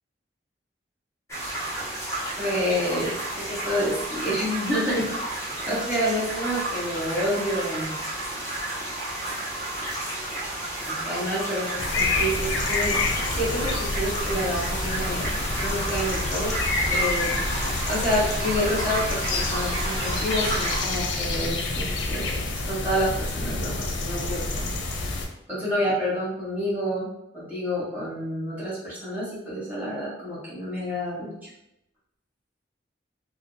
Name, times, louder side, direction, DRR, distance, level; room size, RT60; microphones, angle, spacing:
sound 1, 1.3-20.8, right 1 dB, 15° left, 0.7 m, -31 dB
voice 1, 2.4-7.9 10.9-13.0 13.3-16.5 16.9-17.4 17.9-22.3 22.7-24.7 25.5-27.1 27.3-31.5, equal, 10° right, -9 dB, 1.2 m, -28 dB
sound 2, 11.8-25.3, left 2 dB, 85° left, 0.5 m, -28 dB
2.7 x 2.1 x 3.7 m, 0.82 s
head